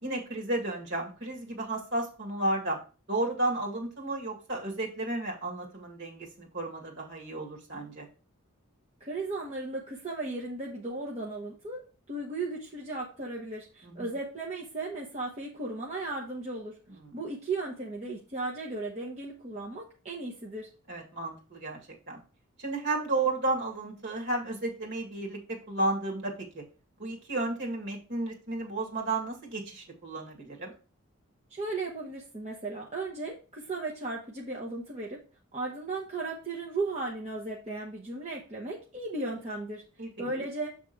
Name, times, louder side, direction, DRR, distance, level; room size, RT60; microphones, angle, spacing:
voice 1, 0.0-2.8 3.1-8.1 13.8-14.1 17.1-17.2 20.9-21.8 22.1-22.2 22.6-26.6 27.0-30.7 40.0-40.1, right 2 dB, 50° right, 0 dB, 2.0 m, -33 dB
voice 2, 9.0-16.8 17.1-20.7 31.5-35.2 35.5-39.8 40.2-40.7, right 2 dB, 30° right, -3 dB, 1.0 m, -36 dB
7.6 x 3.6 x 4.5 m, 0.35 s
head